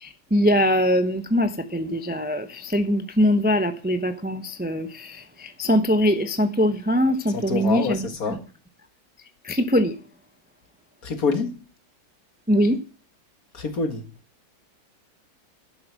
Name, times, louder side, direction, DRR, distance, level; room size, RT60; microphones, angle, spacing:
voice 1, 0.0-8.1 9.4-10.0 12.5-12.8, equal, 10° right, 0.6 m, -22 dB
voice 2, 7.3-8.4 11.0-11.5 13.5-14.0, left 4 dB, 55° left, 2.2 m, -26 dB
11.5 x 10.5 x 6.3 m
omnidirectional pair, 1.9 m